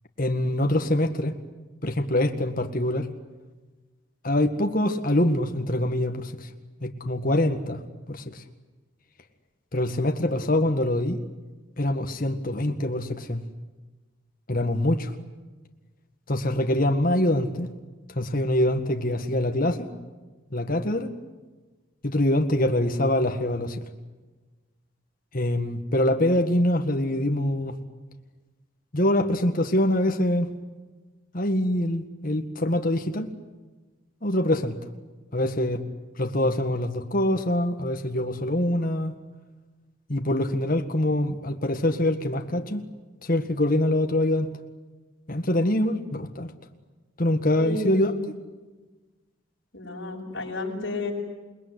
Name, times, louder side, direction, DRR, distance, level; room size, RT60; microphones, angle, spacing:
voice 1, 0.2-1.3 1.8-3.1 4.2-6.5 6.8-7.8 8.1-8.4 9.7-11.2 11.8-13.4 14.5-15.1 16.3-17.7 18.2-19.9 20.5-21.1 22.0-23.9 25.3-27.7 28.9-30.5 31.3-33.3 34.2-34.8 35.3-35.8 36.2-39.1 40.1-42.9 43.2-44.5 45.3-46.5 47.2-48.1, left 1 dB, 45° left, 5 dB, 1.8 m, -24 dB
voice 2, 47.6-48.2 49.7-51.1, left 2 dB, 60° left, -3 dB, 6.7 m, -31 dB
28.5 x 20.5 x 9.7 m, 1.2 s
head